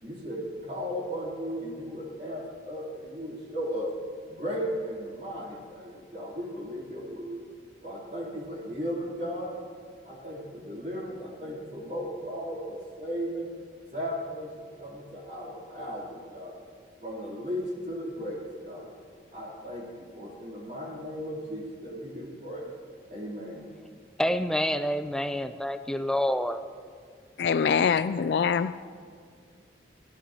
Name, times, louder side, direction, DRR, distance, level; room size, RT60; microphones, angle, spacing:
voice 1, 0.0-3.9 4.3-7.4 7.8-9.6 10.0-13.5 13.9-16.6 17.0-18.9 19.3-22.6 23.1-23.7, equal, 40° right, 3.2 m, -36 dB
voice 2, 24.2-26.6, equal, 5° left, 0.5 m, -27 dB
voice 3, 27.4-28.7, left 6 dB, 65° left, 0.3 m, -24 dB
29.5 x 12.5 x 2.9 m
head